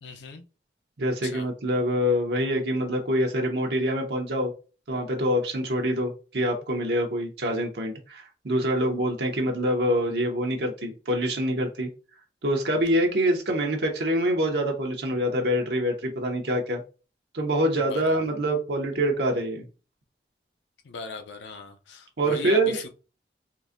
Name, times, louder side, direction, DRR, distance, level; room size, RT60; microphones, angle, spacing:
voice 1, 0.0-0.4 1.2-1.5 17.7-18.4 20.8-22.9, left 4 dB, 85° left, 0.5 m, -38 dB
voice 2, 1.0-4.5 4.9-11.9 12.4-16.8 17.3-19.6 22.2-22.8, equal, 70° right, 0.7 m, -25 dB
3.8 x 2.5 x 2.5 m
head